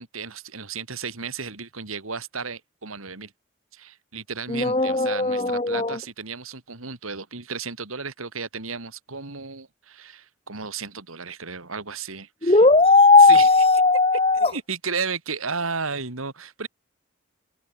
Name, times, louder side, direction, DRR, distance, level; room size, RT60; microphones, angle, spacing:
voice 1, 0.0-3.3 3.7-12.6 13.2-13.5 14.4-16.7, right 5 dB, 90° right, 2.9 m, -33 dB
voice 2, 4.5-6.0 12.4-14.5, left 3 dB, 30° left, 1.2 m, -17 dB
head